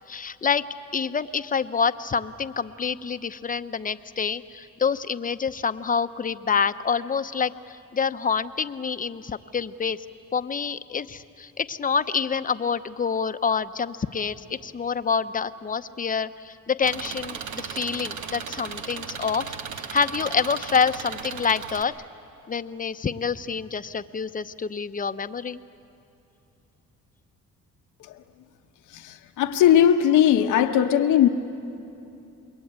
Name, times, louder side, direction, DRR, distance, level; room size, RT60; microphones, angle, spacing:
voice 1, 0.1-0.6 0.9-10.0 10.3-19.5 19.9-21.9 22.5-25.6, left 6 dB, 30° left, 11 dB, 0.8 m, -27 dB
Engine, 16.8-21.8, right 6 dB, 70° right, 1.5 m, -36 dB
voice 2, 28.9-31.3, left 10 dB, 85° left, 7 dB, 1.1 m, -19 dB
27.5 x 22.0 x 8.9 m, 2.8 s
cardioid pair, 90°, 30 cm